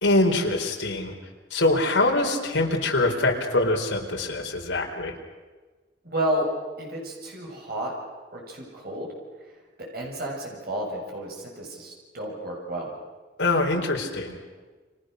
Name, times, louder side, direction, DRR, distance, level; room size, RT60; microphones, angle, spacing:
voice 1, 0.0-1.1 1.5-5.1 13.4-14.4, left 2 dB, 75° left, 1 dB, 4.4 m, -24 dB
voice 2, 6.0-6.5 6.8-7.9 8.3-9.1 9.8-12.9, right 1 dB, 50° right, -1 dB, 6.8 m, -31 dB
29.5 x 26.0 x 6.6 m, 1.3 s
head